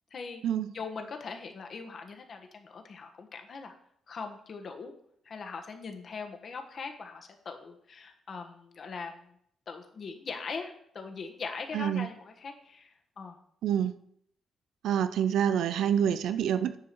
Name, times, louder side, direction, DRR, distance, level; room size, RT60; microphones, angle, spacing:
voice 1, 0.1-0.4 0.7-3.7 4.1-4.9 5.2-9.3 9.7-13.4, left 5 dB, 40° left, 5 dB, 1.3 m, -41 dB
voice 2, 11.7-12.1 13.6-13.9 14.8-16.8, right 9 dB, 85° right, 12 dB, 0.6 m, -27 dB
9.9 x 4.8 x 7.6 m, 0.69 s
cardioid pair, 165°, 0 cm